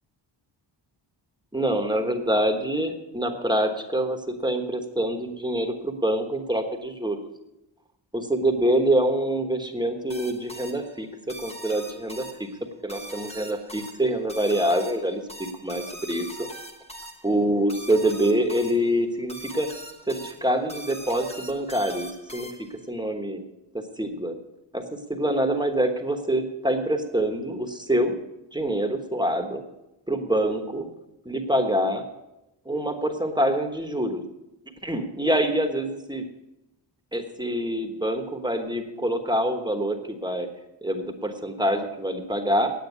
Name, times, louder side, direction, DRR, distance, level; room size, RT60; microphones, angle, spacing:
voice 1, 1.5-7.2 8.1-11.1 11.4-12.2 12.8-15.2 15.6-16.5 17.2-19.7 20.1-22.5 22.9-23.4 23.7-24.3 24.7-28.1 28.5-29.6 30.1-30.9 31.2-32.0 32.6-34.2 34.8-36.2 37.1-40.5 40.8-42.7, right 1 dB, 10° right, 4 dB, 1.2 m, -25 dB
sound 1, 10.1-22.9, right 1 dB, 15° left, 1.2 m, -42 dB
9.1 x 9.1 x 8.1 m, 0.93 s
wide cardioid pair, 140°, 45 cm